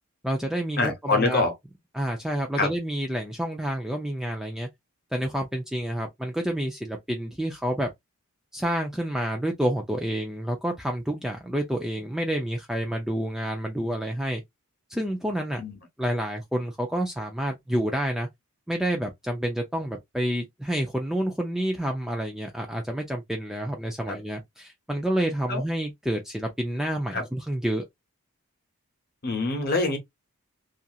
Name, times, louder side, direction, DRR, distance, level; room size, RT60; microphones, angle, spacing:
voice 1, 0.2-1.4 1.9-4.7 5.1-7.9 8.5-14.4 14.9-15.6 16.0-18.3 18.7-27.8, right 1 dB, ahead, 0.3 m, -29 dB
voice 2, 0.8-1.5 2.6-2.7 15.6-15.8 24.1-24.2 25.5-25.6 27.1-27.2 29.2-30.0, left 3 dB, 45° left, 0.8 m, -25 dB
2.8 x 2.5 x 2.3 m
head